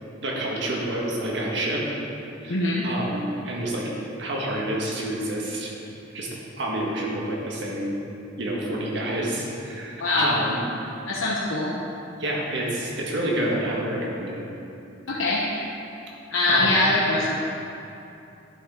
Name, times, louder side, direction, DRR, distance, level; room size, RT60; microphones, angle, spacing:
voice 1, 0.2-1.9 2.4-2.6 2.8-3.9 4.2-5.7 6.1-8.0 8.4-10.6 12.2-14.4 16.5-16.8, right 1 dB, 60° right, -3 dB, 1.6 m, -28 dB
voice 2, 2.5-2.9 10.0-10.4 11.1-11.7 15.1-15.4 16.3-17.4, left 2 dB, 90° left, -5 dB, 0.9 m, -22 dB
11.0 x 7.3 x 3.7 m, 2.8 s
head